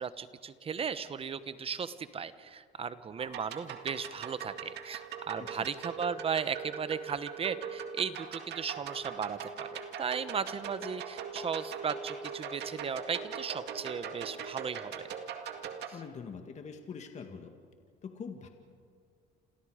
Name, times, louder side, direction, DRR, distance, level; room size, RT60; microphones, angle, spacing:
voice 1, 0.0-15.1, right 6 dB, 30° right, 13 dB, 1.0 m, -36 dB
sound 1, 3.2-15.9, right 7 dB, 70° right, 2.0 m, -41 dB
voice 2, 15.9-17.5 18.0-18.5, left 6 dB, 40° left, 5 dB, 2.0 m, -44 dB
28.5 x 28.0 x 5.1 m, 2.1 s
cardioid pair, 120°, 18 cm